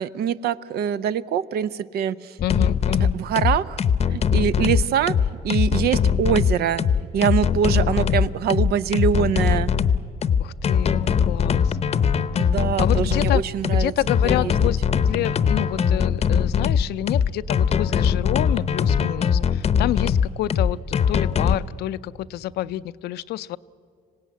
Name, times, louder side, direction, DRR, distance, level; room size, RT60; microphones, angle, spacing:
voice 1, 0.0-2.4 3.1-3.8 4.1-5.1 5.4-6.8 7.1-9.7 12.3-13.9 14.2-14.5, right 8 dB, 70° right, 16 dB, 0.7 m, -24 dB
voice 2, 2.4-3.2 7.8-8.0 10.4-11.8 12.3-12.5 12.8-14.8 15.1-23.6, left 14 dB, 70° left, 16 dB, 0.5 m, -28 dB
sound 1, 2.4-21.6, left 7 dB, 40° left, 0.8 m, -21 dB
26.0 x 17.5 x 9.3 m, 2.4 s
cardioid pair, 110°, 17 cm